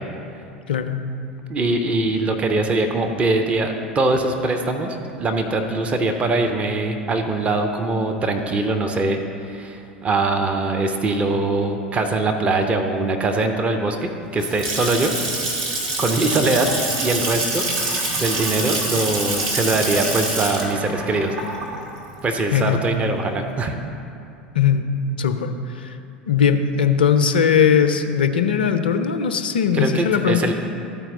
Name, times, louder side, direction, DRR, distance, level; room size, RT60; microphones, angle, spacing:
voice 1, 0.7-1.0 22.5-22.8 24.5-24.9 25.2-26.0 26.3-30.5, left 7 dB, 70° left, 8 dB, 0.5 m, -19 dB
voice 2, 1.5-15.1 16.0-16.7 17.0-17.7 18.2-21.3 22.2-23.8 29.7-30.5, right 2 dB, 25° right, 5 dB, 0.7 m, -22 dB
Water tap faucet / Sink (filling or washing) / Splash splatter, 14.2-23.0, right 2 dB, 55° right, 1.9 m, -26 dB
13.5 x 4.6 x 3.8 m, 2.6 s
figure-of-eight pair, 75°, 5 cm